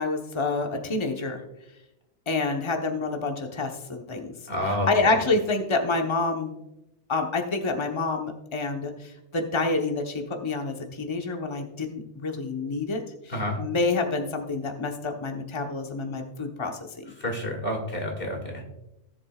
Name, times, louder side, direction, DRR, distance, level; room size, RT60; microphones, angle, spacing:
voice 1, 0.0-1.4 2.3-4.3 4.9-6.6 7.1-8.9 9.3-13.0 13.6-17.1, left 3 dB, 25° left, 3 dB, 1.0 m, -27 dB
voice 2, 4.5-4.9 13.3-13.6 17.2-18.6, left 1 dB, 50° left, 1 dB, 2.4 m, -29 dB
17.5 x 7.2 x 2.4 m, 0.89 s
omnidirectional pair, 1.2 m